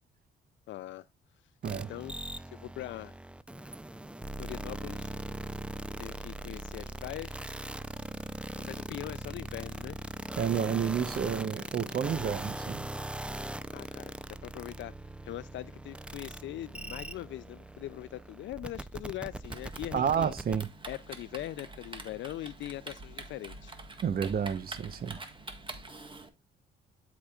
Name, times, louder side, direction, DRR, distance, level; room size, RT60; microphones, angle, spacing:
voice 1, 0.7-1.1 1.7-2.2 2.5-3.1 4.4-5.1 6.0-7.4 8.6-10.0 13.7-14.9 15.2-20.3 20.9-23.8, left 14 dB, 70° left, 0.4 m, -41 dB
sound 1, 1.6-20.6, right 1 dB, 5° right, 0.5 m, -40 dB
voice 2, 10.4-12.8 19.9-20.7 24.0-25.2, right 8 dB, 50° right, 0.8 m, -30 dB
Typing, 19.4-26.3, right 2 dB, 25° right, 1.6 m, -46 dB
12.0 x 4.9 x 2.3 m
cardioid pair, 90°, 20 cm